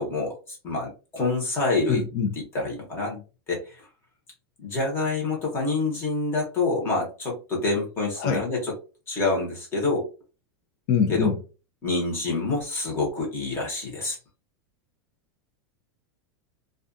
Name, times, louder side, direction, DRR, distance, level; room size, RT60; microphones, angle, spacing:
voice 1, 0.0-2.1 2.3-3.2 3.5-3.8 4.6-8.7 9.1-10.1 11.1-11.3 11.8-14.2, left 3 dB, 20° left, -1 dB, 1.0 m, -27 dB
voice 2, 1.9-2.3 8.2-8.4 10.9-11.4, left 6 dB, 40° left, 4 dB, 0.5 m, -24 dB
2.3 x 2.3 x 2.5 m, 0.33 s
supercardioid pair, 175°, 13 cm